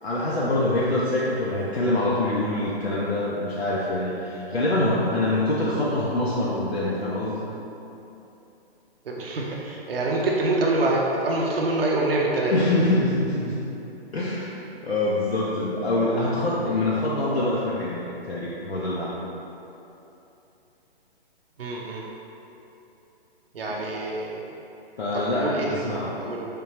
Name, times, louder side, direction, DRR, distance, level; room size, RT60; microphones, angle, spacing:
voice 1, 0.0-7.4 12.5-13.5 14.1-14.5 14.8-19.2 25.0-26.1, left 2 dB, 75° left, -6 dB, 0.6 m, -25 dB
voice 2, 9.0-12.5 21.6-22.1 23.5-24.4 25.1-26.5, right 2 dB, 65° right, -2 dB, 0.6 m, -26 dB
3.7 x 3.7 x 2.7 m, 2.9 s
figure-of-eight pair, 130°, 31 cm